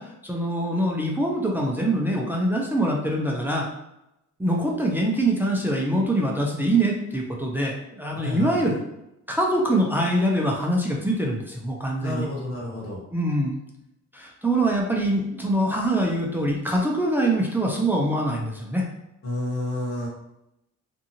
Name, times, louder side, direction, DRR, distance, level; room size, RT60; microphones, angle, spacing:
voice 1, 0.0-3.7 4.4-8.7 9.3-12.3 13.1-13.6 14.1-18.9, right 1 dB, 5° right, -1 dB, 0.5 m, -24 dB
voice 2, 8.2-8.8 12.0-13.0 19.2-20.1, left 1 dB, 45° left, -5 dB, 1.3 m, -30 dB
2.6 x 2.4 x 2.8 m, 0.85 s
cardioid pair, 90°, 30 cm